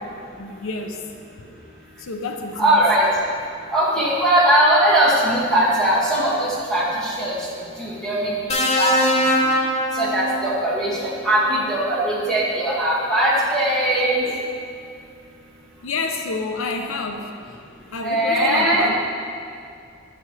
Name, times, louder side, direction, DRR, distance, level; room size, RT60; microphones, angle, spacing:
voice 1, 0.4-1.1 2.0-2.7 15.8-17.3 17.9-19.0, left 3 dB, 85° left, 5 dB, 0.6 m, -29 dB
voice 2, 2.6-3.1 3.7-7.4 7.8-8.3 8.8-8.9 9.9-14.3 18.0-18.9, right 1 dB, 5° left, -9 dB, 2.0 m, -19 dB
sound 1, 8.5-10.8 12.1-12.3, equal, 30° left, 0.8 m, -21 dB
9.9 x 8.3 x 3.3 m, 2.4 s
head